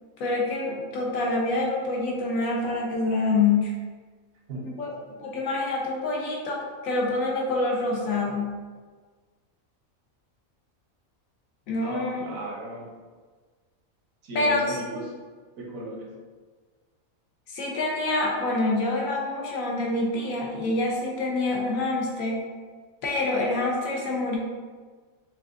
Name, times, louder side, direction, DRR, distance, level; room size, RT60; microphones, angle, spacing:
voice 1, 0.2-3.7 4.8-4.9 5.2-8.5 11.7-12.2 14.3-14.8 17.5-22.4 23.0-24.4, left 2 dB, 75° left, -2 dB, 1.2 m, -26 dB
voice 2, 4.5-5.3 11.7-12.9 14.2-15.1 15.6-16.1, right 1 dB, 75° right, -2 dB, 1.2 m, -37 dB
5.9 x 2.4 x 2.5 m, 1.5 s
omnidirectional pair, 1.5 m